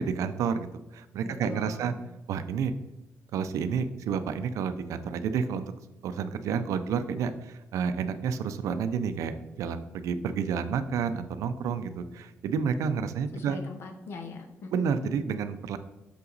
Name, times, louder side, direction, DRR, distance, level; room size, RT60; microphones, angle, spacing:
voice 1, 0.0-1.9 2.3-2.7 3.3-5.7 6.0-13.6 14.7-15.8, right 6 dB, 80° right, 11 dB, 0.5 m, -30 dB
voice 2, 1.2-1.9 13.3-14.8, left 3 dB, 50° left, 6 dB, 0.9 m, -41 dB
6.1 x 5.6 x 3.9 m, 0.99 s
cardioid pair, 175°, 5 cm